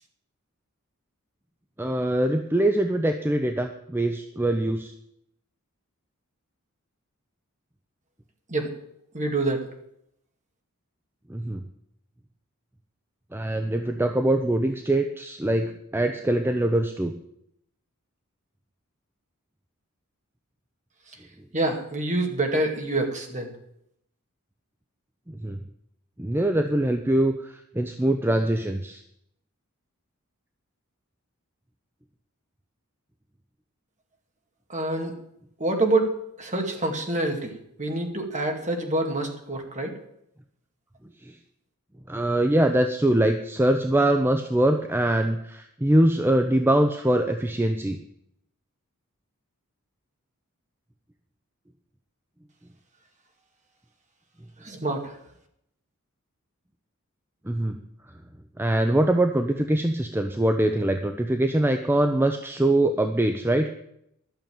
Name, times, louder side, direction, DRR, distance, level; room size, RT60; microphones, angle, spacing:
voice 1, 1.8-4.9 11.3-11.6 13.3-17.1 25.3-25.6 26.2-29.0 41.3-41.4 42.1-48.0 57.5-57.8 58.6-63.7, right 1 dB, 10° right, 6 dB, 0.7 m, -23 dB
voice 2, 9.1-9.6 21.5-23.5 34.7-35.1 35.6-36.1 36.4-37.5 37.8-39.9 54.6-55.1, right 2 dB, 35° right, 3 dB, 2.2 m, -26 dB
12.0 x 6.9 x 9.0 m, 0.75 s
head